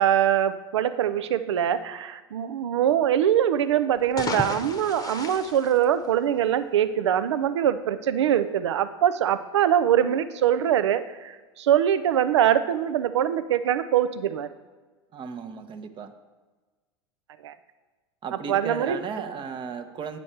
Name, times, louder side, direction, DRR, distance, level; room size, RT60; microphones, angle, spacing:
voice 1, 0.0-14.5 17.4-17.5 18.5-19.0, right 10 dB, 75° right, 13 dB, 0.5 m, -23 dB
sound 1, 3.9-6.6, left 4 dB, 25° left, 0.9 m, -34 dB
voice 2, 15.1-16.2 18.2-20.2, right 6 dB, 35° right, 8 dB, 0.8 m, -35 dB
8.7 x 6.3 x 4.4 m, 1.3 s
figure-of-eight pair, 80°, 15 cm